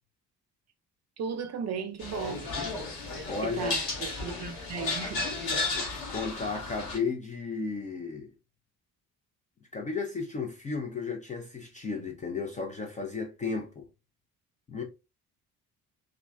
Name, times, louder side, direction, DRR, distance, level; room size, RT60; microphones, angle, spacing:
voice 1, 1.2-2.5 3.4-5.2, right 6 dB, 35° right, 0.5 m, -35 dB
sound 1, 2.0-7.0, left 3 dB, 80° left, 1.0 m, -33 dB
voice 2, 3.2-3.7 5.7-8.3 9.7-13.9 14.7-14.8, left 4 dB, 20° left, 0.3 m, -34 dB
2.9 x 2.4 x 2.2 m
figure-of-eight pair, 45°, 48 cm